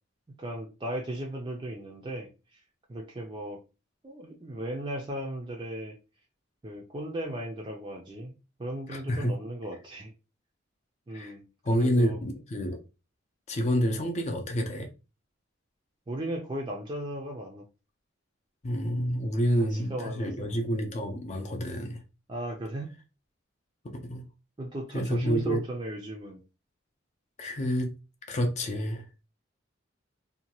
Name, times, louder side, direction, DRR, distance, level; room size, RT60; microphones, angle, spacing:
voice 1, 0.4-2.6 2.9-3.6 4.0-6.0 6.6-8.3 8.6-10.1 11.1-12.2 16.1-17.7 19.6-20.5 22.3-22.9 24.6-26.4, right 1 dB, 25° right, 0.4 m, -36 dB
voice 2, 8.9-9.4 11.1-11.3 11.6-12.8 13.5-14.9 18.6-22.0 24.1-24.2 24.9-25.6 27.4-27.9 28.3-29.1, equal, 35° left, 0.5 m, -28 dB
2.7 x 2.2 x 2.9 m
head